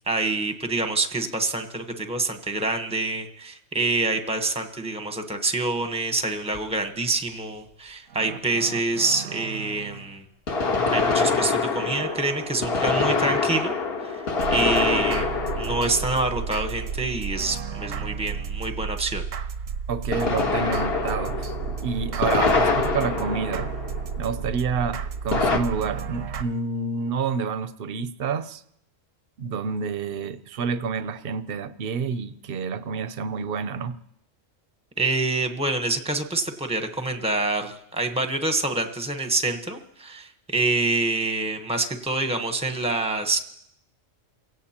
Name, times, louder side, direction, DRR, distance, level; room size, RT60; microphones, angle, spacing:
voice 1, 0.1-10.2 10.9-19.2 35.0-43.4, right 2 dB, 5° right, 6 dB, 0.9 m, -26 dB
sound 1, 6.5-6.6 10.5-17.0 20.1-24.3 25.3-25.6, left 4 dB, 50° left, 1.6 m, -25 dB
sound 2, 8.1-10.2 11.7-13.0 14.4-26.4, right 6 dB, 85° right, 1.2 m, -33 dB
voice 2, 19.9-21.5 21.8-23.7 24.2-28.6 29.4-34.0, right 5 dB, 50° right, 12 dB, 0.8 m, -28 dB
28.5 x 17.0 x 2.9 m, 0.74 s
omnidirectional pair, 1.3 m